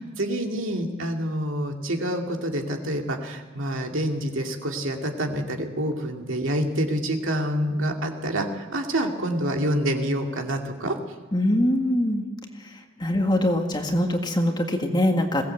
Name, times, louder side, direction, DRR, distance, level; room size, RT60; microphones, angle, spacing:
voice 1, 0.2-11.0, right 1 dB, 60° right, 2 dB, 2.4 m, -27 dB
voice 2, 11.3-12.2 13.0-15.4, left 1 dB, 20° left, 3 dB, 1.8 m, -23 dB
22.0 x 17.5 x 7.9 m, 1.4 s
head